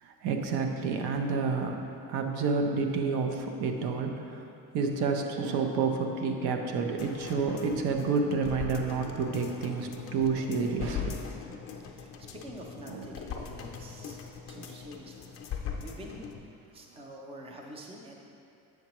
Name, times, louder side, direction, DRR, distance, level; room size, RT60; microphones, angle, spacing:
voice 1, 0.0-1.8 2.1-4.4 4.7-11.2 12.9-13.0 14.6-14.7, right 4 dB, 85° right, 3 dB, 0.7 m, -29 dB
sound 1, 7.0-16.4 16.8-16.9, left 6 dB, 35° left, 0.5 m, -40 dB
voice 2, 11.9-14.2 14.5-16.2 16.7-18.2, equal, 15° right, 0 dB, 0.5 m, -47 dB
7.8 x 5.9 x 3.0 m, 2.7 s
cardioid pair, 155°, 38 cm